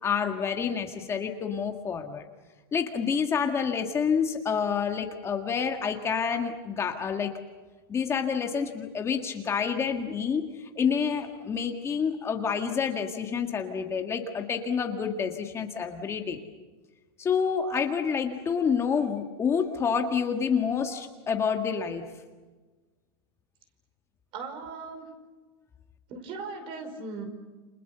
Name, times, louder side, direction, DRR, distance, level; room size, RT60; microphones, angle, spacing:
voice 1, 0.0-2.3 2.7-7.3 7.9-16.4 17.2-22.1, left 6 dB, 20° left, 4 dB, 1.8 m, -28 dB
voice 2, 24.3-25.1 26.1-27.2, right 4 dB, 40° right, 8 dB, 5.2 m, -38 dB
29.5 x 27.5 x 6.9 m, 1.3 s
supercardioid pair, 145°, 14 cm